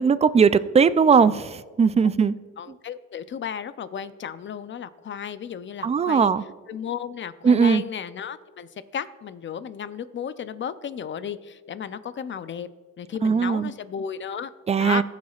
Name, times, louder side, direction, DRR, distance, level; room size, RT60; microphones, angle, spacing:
voice 1, 0.0-2.4 5.8-6.4 7.4-7.8 13.2-13.7 14.7-15.0, right 6 dB, 20° right, 15 dB, 0.3 m, -19 dB
voice 2, 2.6-6.3 6.7-12.7 13.0-14.5 14.8-15.0, left 8 dB, 40° left, 13 dB, 0.6 m, -34 dB
18.0 x 7.5 x 2.4 m, 1.5 s
cardioid pair, 90°, 30 cm